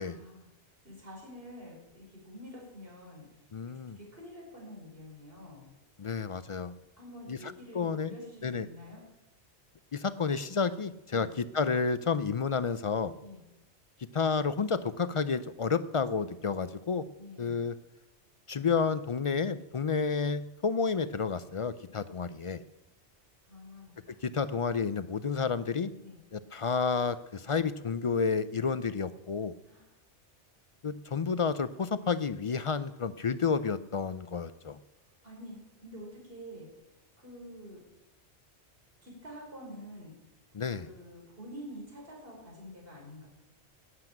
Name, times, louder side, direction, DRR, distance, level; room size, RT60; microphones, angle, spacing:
voice 1, 0.0-5.7 6.0-6.1 7.0-9.0 11.1-11.3 13.2-13.4 17.2-17.6 23.4-24.2 26.0-26.2 29.6-30.0 35.2-37.8 39.0-40.1 40.8-43.3, equal, 55° right, -2 dB, 5.5 m, -48 dB
voice 2, 3.5-4.0 6.0-6.7 7.3-7.4 7.7-8.1 8.4-8.7 9.9-13.1 14.1-17.0 17.4-17.7 18.5-22.6 24.2-25.9 26.3-29.5 30.8-34.8 40.5-40.9, left 5 dB, 55° left, 14 dB, 0.3 m, -30 dB
12.0 x 9.6 x 8.9 m, 0.95 s
omnidirectional pair, 1.2 m